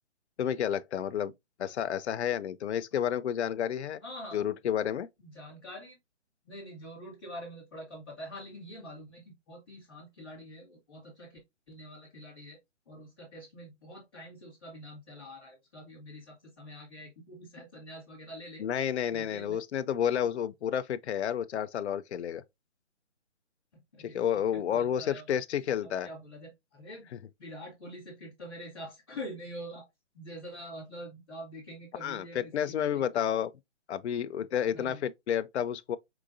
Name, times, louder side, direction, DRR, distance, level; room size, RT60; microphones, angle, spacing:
voice 1, 0.4-1.3 1.6-4.0 4.3-5.1 18.6-22.4 24.0-26.1 32.0-33.5 33.9-36.0, left 9 dB, 65° left, 0.5 m, -30 dB
voice 2, 4.0-4.4 5.2-6.0 6.4-11.4 11.7-12.6 12.9-18.6 19.1-19.6 23.7-25.3 25.8-27.1 27.4-29.9 30.1-33.3 34.7-35.0, equal, ahead, 0.5 m, -45 dB
4.7 x 3.8 x 2.5 m
hypercardioid pair, 165°, 37 cm